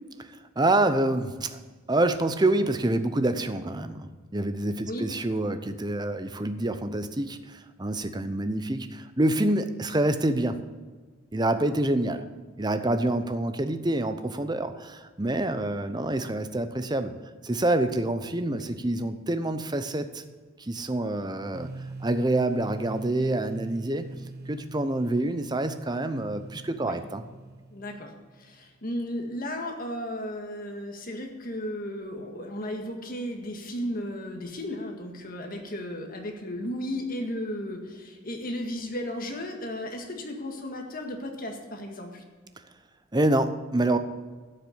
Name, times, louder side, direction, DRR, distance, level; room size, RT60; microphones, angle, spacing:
voice 1, 0.6-1.6 1.9-10.6 11.3-12.2 12.6-17.1 17.4-20.2 20.6-24.1 24.5-27.2 43.1-44.0, right 1 dB, 20° right, 10 dB, 0.7 m, -27 dB
voice 2, 18.4-18.7 26.8-27.0 27.7-42.2, left 1 dB, 45° left, 3 dB, 1.8 m, -35 dB
sound 1, 21.5-28.3, right 2 dB, 50° right, 1.1 m, -42 dB
12.0 x 6.7 x 8.7 m, 1.4 s
head